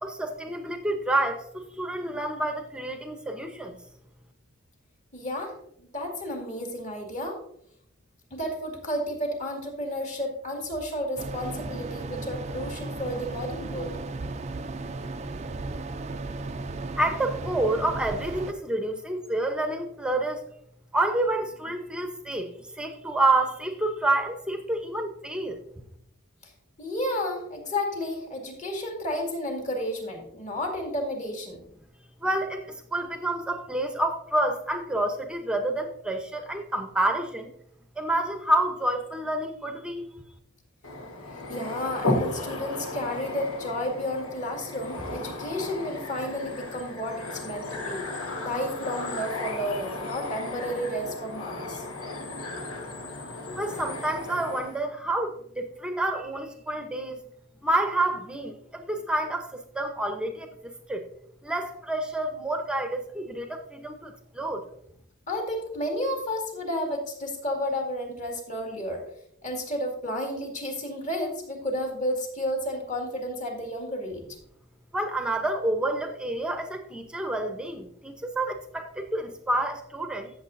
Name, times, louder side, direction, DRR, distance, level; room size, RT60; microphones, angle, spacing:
voice 1, 0.0-3.8 17.0-20.4 20.9-22.5 22.8-25.6 32.2-32.6 32.9-37.5 38.0-40.1 53.6-57.2 57.6-60.5 60.9-61.0 61.4-64.6 74.9-80.3, right 1 dB, 5° right, 6 dB, 0.8 m, -28 dB
voice 2, 5.1-7.4 8.3-13.9 26.4-26.5 26.8-31.6 41.5-48.0 48.4-51.9 65.3-69.0 69.4-74.2, left 1 dB, 35° left, 1 dB, 2.0 m, -32 dB
sound 1, 11.2-18.5, right 3 dB, 30° right, 0.4 m, -35 dB
sound 2, 40.8-54.8, left 2 dB, 90° left, 1.4 m, -35 dB
14.0 x 7.1 x 2.6 m, 0.71 s
head